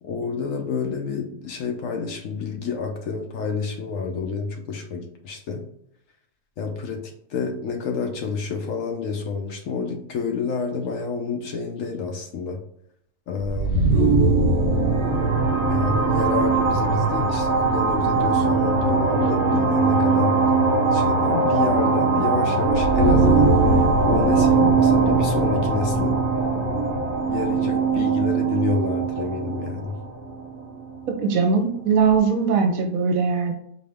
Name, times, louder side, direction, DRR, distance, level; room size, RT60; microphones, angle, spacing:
voice 1, 0.0-5.7 6.6-12.6 13.3-13.8 15.6-20.5 20.9-26.2 27.3-30.0, left 5 dB, 65° left, 3 dB, 0.9 m, -29 dB
sound 1, 13.4-31.1, right 3 dB, 35° right, 1.2 m, -20 dB
voice 2, 31.2-33.5, right 5 dB, 65° right, 4 dB, 1.0 m, -20 dB
4.2 x 2.7 x 3.4 m, 0.72 s
omnidirectional pair, 1.6 m